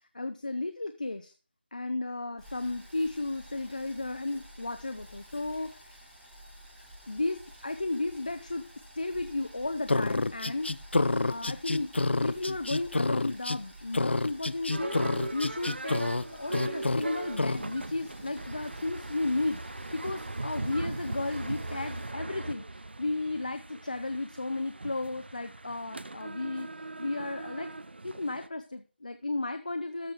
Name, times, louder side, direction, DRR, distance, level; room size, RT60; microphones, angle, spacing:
voice 1, 0.1-1.3 1.7-6.1 7.1-8.6 9.0-10.7 11.3-11.9 12.2-16.0 16.3-26.7 27.0-27.7 28.0-30.1, left 2 dB, 45° left, 9 dB, 0.8 m, -34 dB
Boiling, 2.4-22.1, equal, ahead, 0.5 m, -51 dB
sound 1, 9.9-13.6 13.9-16.2 16.5-17.0 17.4-17.6, left 2 dB, 80° left, 0.6 m, -28 dB
sound 2, 14.7-28.5, right 2 dB, 70° right, 0.7 m, -39 dB
13.0 x 6.1 x 5.0 m, 0.33 s
figure-of-eight pair, 180°, 6 cm